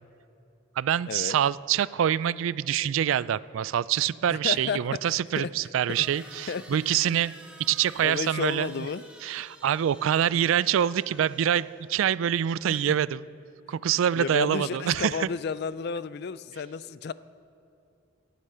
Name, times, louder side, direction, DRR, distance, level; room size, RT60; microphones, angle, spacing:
voice 1, 0.8-7.3 7.6-8.9 9.2-13.2 13.7-15.3, right 9 dB, 75° right, 19 dB, 0.3 m, -25 dB
voice 2, 4.3-4.8 5.1-5.5 6.5-6.6 8.0-9.0 12.7-12.9 14.2-17.1, left 5 dB, 50° left, 16 dB, 0.3 m, -32 dB
sound 1, 5.9-12.0, right 1 dB, 5° right, 1.3 m, -50 dB
18.0 x 8.3 x 5.6 m, 2.8 s
head